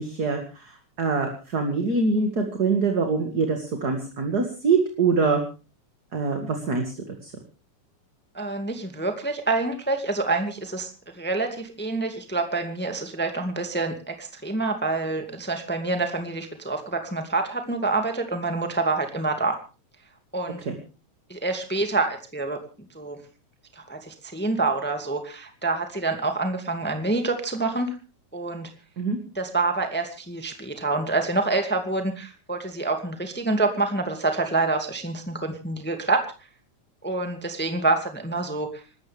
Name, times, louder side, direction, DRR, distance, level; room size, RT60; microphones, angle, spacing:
voice 1, 0.0-5.4 6.1-6.9 7.2-7.3 20.7-20.8 29.0-29.2, right 4 dB, 35° right, 4 dB, 2.4 m, -24 dB
voice 2, 8.3-19.6 20.3-20.6 21.3-22.6 22.9-23.2 23.7-27.9 28.3-28.7 29.3-36.3 37.0-38.8, right 3 dB, 5° left, 5 dB, 1.7 m, -27 dB
26.5 x 13.0 x 3.5 m, 0.34 s
omnidirectional pair, 3.4 m